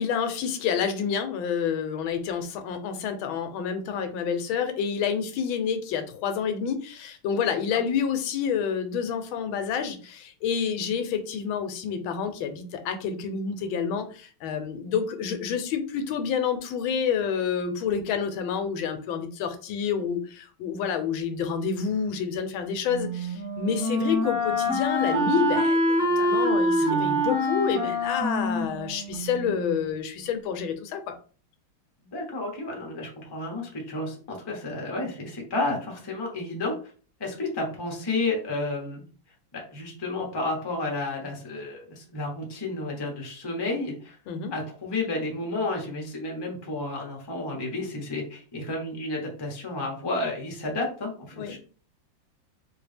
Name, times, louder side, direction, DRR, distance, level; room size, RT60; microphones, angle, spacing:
voice 1, 0.0-31.1 44.3-44.5 51.3-51.6, left 7 dB, 90° left, 8 dB, 1.5 m, -28 dB
Wind instrument woodwind instrument, 22.9-29.7, equal, 30° right, 1.5 m, -25 dB
voice 2, 26.8-27.2 32.0-36.7 37.2-39.0 39.5-44.2 44.5-51.6, left 2 dB, 20° left, 0 dB, 0.6 m, -31 dB
3.8 x 2.8 x 3.3 m, 0.40 s
omnidirectional pair, 2.1 m